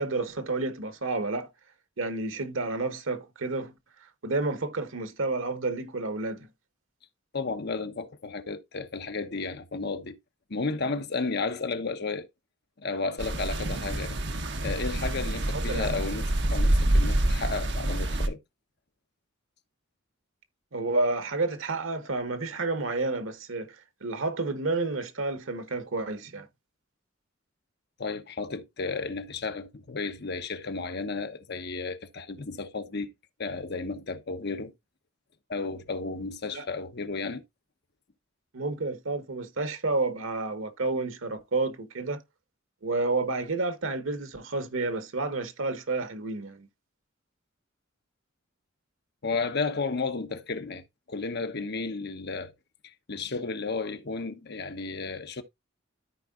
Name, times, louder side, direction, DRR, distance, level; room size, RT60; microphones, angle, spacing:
voice 1, 0.0-1.5 2.0-3.7 4.2-6.5 15.5-16.0 20.7-23.7 24.0-26.5 36.5-36.7 38.5-42.2 42.8-46.7, right 3 dB, 90° right, 1.2 m, -30 dB
voice 2, 7.3-10.2 10.5-12.3 12.8-14.2 14.6-18.4 28.0-33.1 33.4-34.7 35.5-37.4 49.2-52.5 52.8-55.4, left 4 dB, 55° left, 1.0 m, -33 dB
sound 1, 13.2-18.3, right 1 dB, 60° right, 1.2 m, -27 dB
13.5 x 4.6 x 2.4 m
head